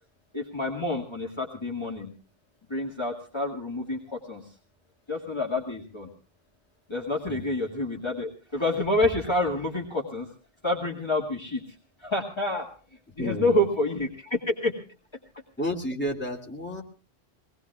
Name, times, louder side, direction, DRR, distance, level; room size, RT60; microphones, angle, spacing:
voice 1, 0.3-2.1 2.7-4.4 5.1-6.1 6.9-10.3 10.6-11.6 12.0-12.7 13.2-14.7, left 1 dB, 25° left, -2 dB, 2.1 m, -28 dB
voice 2, 13.2-13.6 15.6-16.8, left 1 dB, 10° left, -1 dB, 2.7 m, -31 dB
24.5 x 19.5 x 2.4 m, 0.39 s
omnidirectional pair, 1.0 m